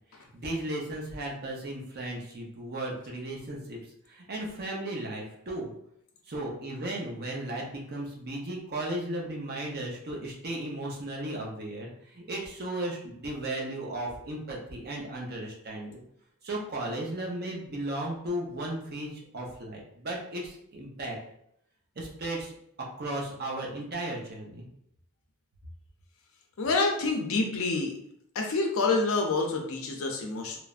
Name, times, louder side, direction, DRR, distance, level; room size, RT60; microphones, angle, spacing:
voice 1, 0.1-3.8 4.1-5.7 6.3-16.0 16.4-21.2 22.0-22.5 23.0-24.7, right 1 dB, 45° right, -2 dB, 0.6 m, -35 dB
voice 2, 26.6-27.9 28.4-30.6, left 3 dB, 60° left, 1 dB, 0.5 m, -27 dB
3.1 x 2.0 x 2.4 m, 0.74 s
head